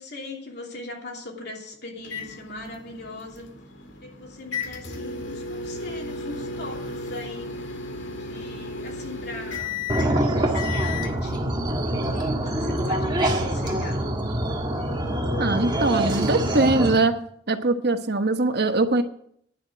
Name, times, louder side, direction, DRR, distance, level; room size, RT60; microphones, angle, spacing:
voice 1, 0.0-3.5 4.0-7.7 8.2-11.5 11.8-14.0, left 2 dB, 60° left, 0 dB, 2.8 m, -40 dB
sound 1, 2.0-11.1, left 3 dB, 80° left, 2.1 m, -35 dB
sound 2, 9.9-17.0, right 1 dB, 25° right, 1.6 m, -25 dB
voice 2, 15.4-17.1 17.5-19.0, right 2 dB, 60° right, 8 dB, 1.2 m, -22 dB
10.5 x 7.7 x 8.0 m, 0.66 s
head